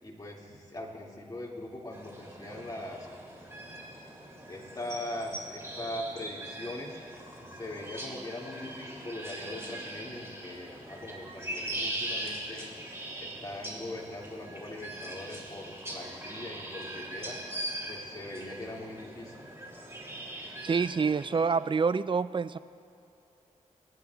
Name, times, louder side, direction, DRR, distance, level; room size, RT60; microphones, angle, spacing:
voice 1, 0.0-3.1 4.5-7.0 7.5-12.9 13.2-17.4 17.9-19.5, left 1 dB, 30° left, -2 dB, 2.3 m, -41 dB
sound 1, 1.9-21.5, right 1 dB, 20° right, 2.9 m, -41 dB
voice 2, 20.6-22.6, right 5 dB, 40° right, 15 dB, 0.4 m, -27 dB
28.5 x 9.6 x 2.4 m, 2.7 s
cardioid pair, 50°, 13 cm